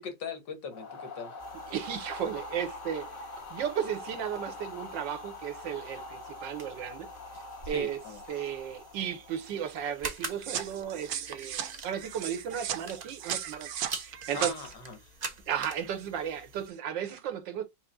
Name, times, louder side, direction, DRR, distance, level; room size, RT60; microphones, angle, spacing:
voice 1, 0.0-1.4 7.6-8.5 14.3-15.1, left 5 dB, 75° left, 2.0 m, -41 dB
sound 1, 0.7-9.8, left 2 dB, 50° left, 1.5 m, -44 dB
sound 2, 1.4-16.7, right 3 dB, 45° right, 0.5 m, -46 dB
voice 2, 1.7-7.1 7.7-8.0 8.3-14.5 15.5-17.6, right 9 dB, 85° right, 1.6 m, -35 dB
sound 3, 10.4-14.5, right 10 dB, 65° right, 1.0 m, -36 dB
5.8 x 2.1 x 3.6 m
omnidirectional pair, 2.0 m